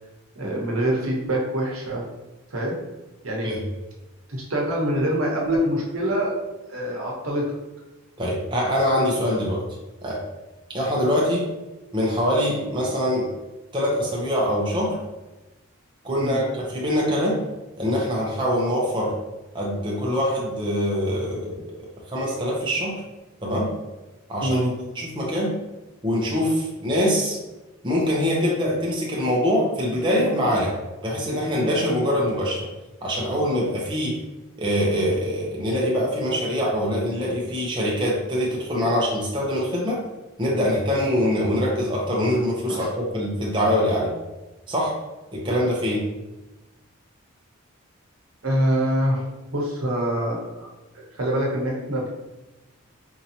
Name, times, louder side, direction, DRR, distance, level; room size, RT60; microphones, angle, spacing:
voice 1, 0.3-2.0 2.5-2.8 3.2-3.5 4.3-6.3 6.7-7.5 11.0-11.1 16.2-16.4 24.4-24.7 41.5-41.6 42.7-42.8 48.4-50.7 51.1-52.1, right 1 dB, 75° right, -2 dB, 1.0 m, -25 dB
voice 2, 8.2-9.6 10.0-10.2 10.7-11.5 11.9-13.3 13.7-15.0 16.0-17.4 17.8-19.1 19.5-23.0 23.4-23.7 24.3-24.6 25.0-25.5 26.0-27.4 27.8-30.7 31.0-32.7 33.0-34.2 34.6-40.0 40.4-44.1 44.7-45.0 45.3-46.0, equal, 20° right, -4 dB, 0.7 m, -24 dB
4.5 x 2.7 x 2.8 m, 1.1 s
head